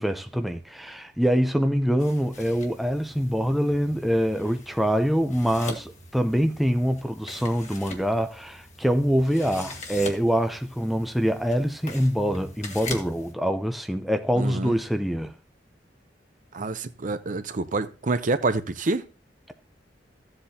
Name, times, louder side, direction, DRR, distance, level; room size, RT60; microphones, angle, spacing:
voice 1, 0.0-15.3, equal, ahead, 0.6 m, -25 dB
sound 1, 2.0-13.3, left 2 dB, 40° left, 1.6 m, -42 dB
voice 2, 14.4-14.7 16.5-19.0, right 3 dB, 45° right, 0.6 m, -27 dB
14.0 x 7.8 x 2.8 m
head